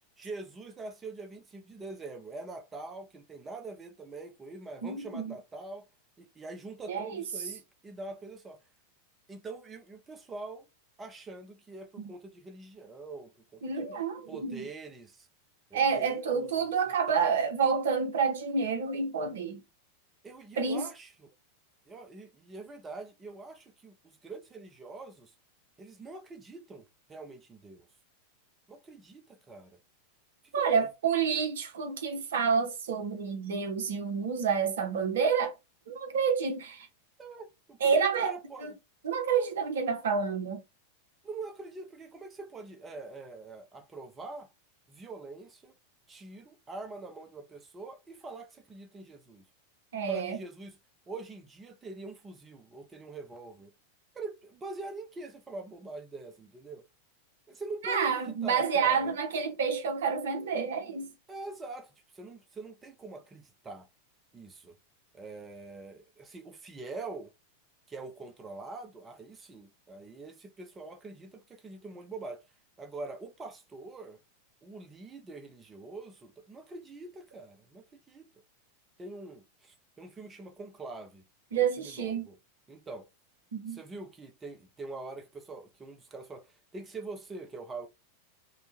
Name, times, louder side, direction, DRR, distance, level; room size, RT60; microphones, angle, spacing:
voice 1, 0.2-5.9 6.2-8.6 9.3-10.7 11.0-13.9 14.3-15.3 15.7-16.7 17.1-17.3 20.2-21.1 21.9-25.3 25.8-27.9 28.7-29.7 30.5-30.9 37.2-38.7 41.2-44.5 44.9-45.7 46.1-49.4 50.1-50.8 51.1-53.7 54.1-56.8 57.5-59.1 61.3-63.9 64.3-64.7 65.1-67.3 67.9-72.4 72.8-74.2 74.6-78.3 79.0-81.2 81.5-82.4 82.7-83.1 83.7-87.9, right 3 dB, 15° right, 0.6 m, -44 dB
voice 2, 4.8-5.3 6.9-7.3 12.0-12.1 13.6-14.6 15.7-19.6 20.6-20.8 30.5-35.5 35.9-36.9 37.8-38.7 39.0-40.6 49.9-50.4 57.8-61.1 81.5-82.3 83.5-83.8, right 6 dB, 60° right, 0.6 m, -29 dB
2.8 x 2.1 x 2.9 m
figure-of-eight pair, 90°, 0 cm